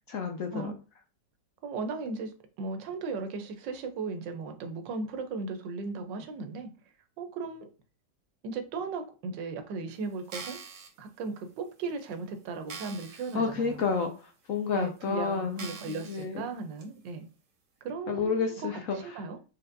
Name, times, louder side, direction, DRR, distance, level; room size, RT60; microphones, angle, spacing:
voice 1, 0.1-0.7 13.3-16.5 18.1-19.0, left 5 dB, 70° left, 0.8 m, -30 dB
voice 2, 1.6-6.7 7.2-7.7 8.4-10.6 11.0-13.8 14.7-17.3 17.8-19.4, right 4 dB, 90° right, 1.4 m, -37 dB
sound 1, 10.2-10.9 11.6-11.7 12.1-12.2 12.7-13.4 13.8-13.9 14.7-14.8 15.6-16.3 16.8-16.9, right 5 dB, 50° right, 1.1 m, -43 dB
4.3 x 3.8 x 2.6 m
omnidirectional pair, 1.9 m